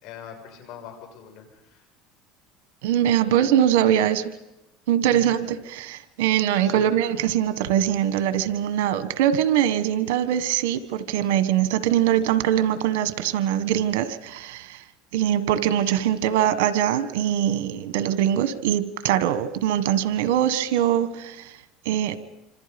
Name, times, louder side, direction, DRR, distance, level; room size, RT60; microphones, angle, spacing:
voice 1, 0.0-1.8 5.1-5.5 6.6-7.0, left 8 dB, 65° left, 6.6 m, -42 dB
voice 2, 2.8-4.3 4.9-14.8 15.1-21.5 21.8-22.1, right 11 dB, 85° right, 1.6 m, -22 dB
27.5 x 26.0 x 5.4 m
supercardioid pair, 115°, 0 cm